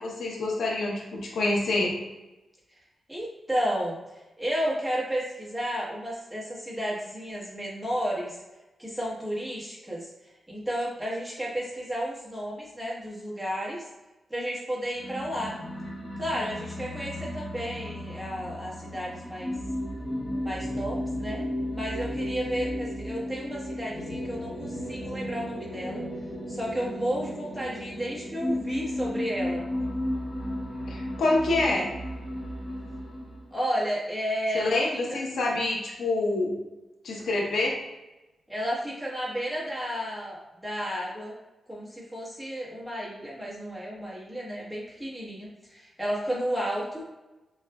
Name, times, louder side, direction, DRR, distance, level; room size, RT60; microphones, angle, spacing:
voice 1, 0.0-1.9 30.9-31.9 34.5-36.5 37.0-37.7, left 2 dB, 75° left, -2 dB, 0.9 m, -26 dB
voice 2, 3.1-4.0 4.4-8.4 8.8-10.1 10.5-13.9 14.3-15.6 16.2-19.5 20.4-21.4 21.7-26.0 26.5-29.6 33.5-34.8 35.1-35.2 38.5-41.3 41.7-47.0, equal, 5° right, -6 dB, 1.2 m, -32 dB
sound 1, 14.9-33.5, left 1 dB, 35° left, 1.2 m, -34 dB
6.2 x 2.4 x 2.3 m, 1.0 s
wide cardioid pair, 150°, 0 cm